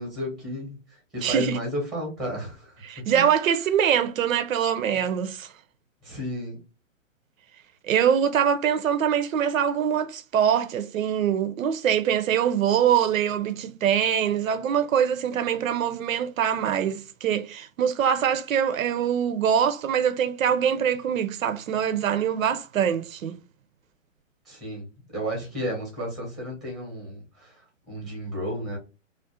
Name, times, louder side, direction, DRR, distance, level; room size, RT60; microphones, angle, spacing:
voice 1, 0.0-3.3 6.0-6.6 24.5-24.9 25.1-27.6 27.9-28.8, equal, ahead, 0.6 m, -33 dB
voice 2, 1.2-1.6 2.8-5.5 7.8-23.4, right 8 dB, 90° right, 0.5 m, -24 dB
2.4 x 2.1 x 2.5 m
hypercardioid pair, 145°, 39 cm